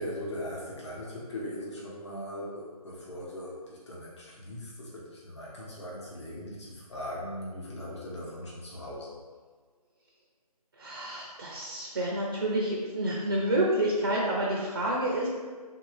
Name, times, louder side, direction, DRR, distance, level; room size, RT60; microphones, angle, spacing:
voice 1, 0.0-9.2, equal, 45° left, -5 dB, 1.1 m, -39 dB
voice 2, 10.8-15.3, right 1 dB, 35° right, -4 dB, 0.5 m, -29 dB
3.2 x 2.7 x 3.3 m, 1.5 s
figure-of-eight pair, 155°, 20 cm